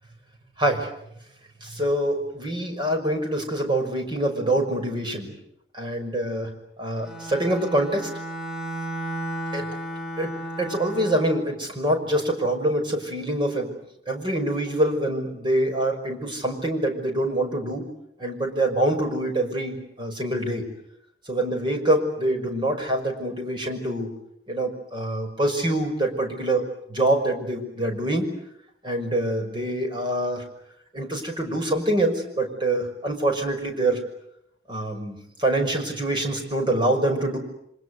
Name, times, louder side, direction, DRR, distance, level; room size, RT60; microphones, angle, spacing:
voice 1, 0.6-0.9 1.6-5.3 5.7-6.5 6.8-8.1 9.5-9.7 10.2-13.7 14.1-17.9 18.2-20.6 21.3-24.1 24.5-26.6 26.9-28.3 28.8-30.4 30.9-34.0 34.7-37.4, right 1 dB, 30° right, 4 dB, 6.0 m, -25 dB
Bowed string instrument, 7.0-11.5, right 1 dB, ahead, 7.3 m, -33 dB
28.0 x 25.5 x 8.0 m, 0.75 s
head